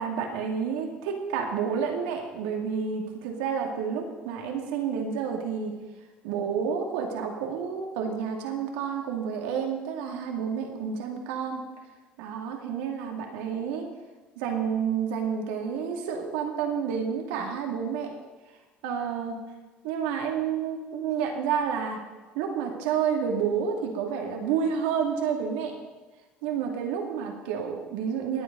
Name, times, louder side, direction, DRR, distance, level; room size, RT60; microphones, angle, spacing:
voice 1, 0.0-5.7 6.2-11.6 12.2-13.9 14.4-18.1 18.8-19.4 19.8-22.0 22.3-25.7 26.4-28.4, right 7 dB, 90° right, 2 dB, 2.4 m, -29 dB
18.5 x 8.3 x 5.2 m, 1.3 s
supercardioid pair, 90°, 4 cm